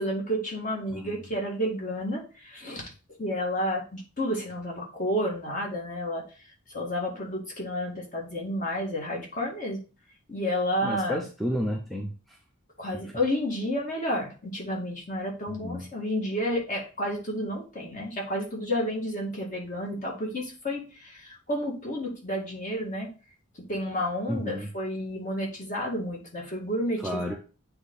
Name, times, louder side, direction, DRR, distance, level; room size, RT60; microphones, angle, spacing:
voice 1, 0.0-2.9 3.2-6.2 6.7-9.8 10.3-11.2 12.8-21.2 21.5-23.1 23.7-27.4, equal, 35° left, -1 dB, 1.9 m, -31 dB
voice 2, 0.9-1.3 10.8-12.4 12.9-13.1 15.5-15.9 24.3-24.7 27.0-27.4, equal, ahead, 1 dB, 0.5 m, -32 dB
7.9 x 3.3 x 3.8 m, 0.35 s
head